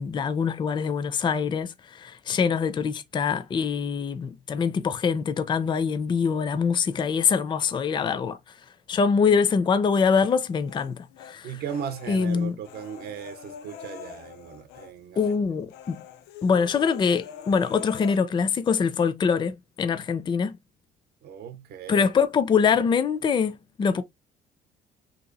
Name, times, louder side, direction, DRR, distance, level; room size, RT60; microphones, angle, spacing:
voice 1, 0.0-8.4 8.9-11.6 12.1-12.6 15.2-16.0 16.4-20.6 21.9-23.5 23.8-24.0, left 6 dB, 25° left, 0.4 m, -24 dB
Human voice, 10.2-11.4 11.7-14.9 15.2-15.4 15.7-18.2, left 9 dB, 85° left, 0.5 m, -44 dB
voice 2, 11.4-15.3 21.2-22.1, right 8 dB, 65° right, 0.7 m, -37 dB
2.9 x 2.5 x 3.9 m
cardioid pair, 110°, 17 cm